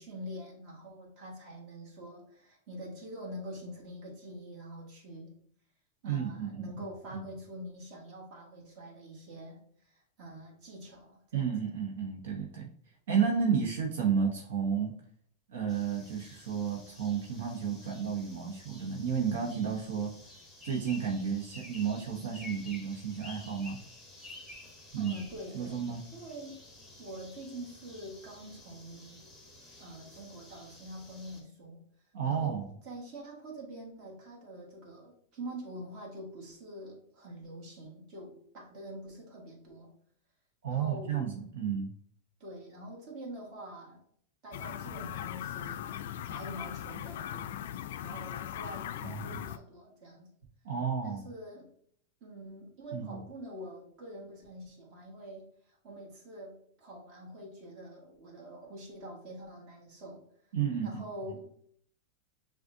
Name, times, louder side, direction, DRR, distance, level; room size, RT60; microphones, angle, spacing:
voice 1, 0.0-5.4 6.0-11.6 24.9-25.8 26.1-26.6 27.0-29.2 29.8-31.8 32.2-39.9 40.7-41.2 42.4-44.0 44.4-46.0 46.3-47.6 48.0-50.3 51.0-51.7 52.2-60.3 60.8-61.5, right 1 dB, 40° right, -2 dB, 1.7 m, -45 dB
voice 2, 6.0-6.6 11.3-12.7 13.1-14.9 15.5-20.1 20.6-23.8 24.9-25.1 25.5-26.0 32.1-32.7 40.6-41.9 49.0-49.4 50.6-51.2 52.9-53.2 60.5-61.0, right 7 dB, 80° right, 0 dB, 1.0 m, -32 dB
sound 1, 15.7-31.4, left 2 dB, 5° left, 0.9 m, -52 dB
sound 2, 44.5-49.6, left 11 dB, 70° left, 0.3 m, -39 dB
6.2 x 2.5 x 2.6 m, 0.62 s
supercardioid pair, 155°, 0 cm